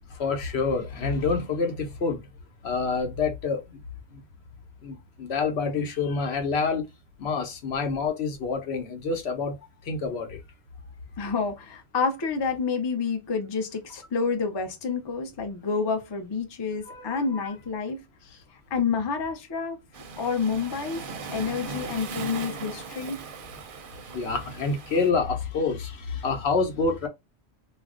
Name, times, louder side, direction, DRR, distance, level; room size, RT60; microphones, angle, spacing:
voice 1, 0.1-2.2 2.6-3.8 4.1-4.2 4.8-6.8 7.2-9.6 9.8-10.4 16.9-17.5 24.1-27.1, left 4 dB, 75° left, 0.9 m, -27 dB
voice 2, 11.2-18.4 18.7-19.8 20.2-21.0 21.3-23.2, left 5 dB, 35° left, 0.4 m, -29 dB
Waves surf, 19.9-25.1, right 4 dB, 60° right, 0.7 m, -38 dB
2.4 x 2.1 x 3.5 m
omnidirectional pair, 1.1 m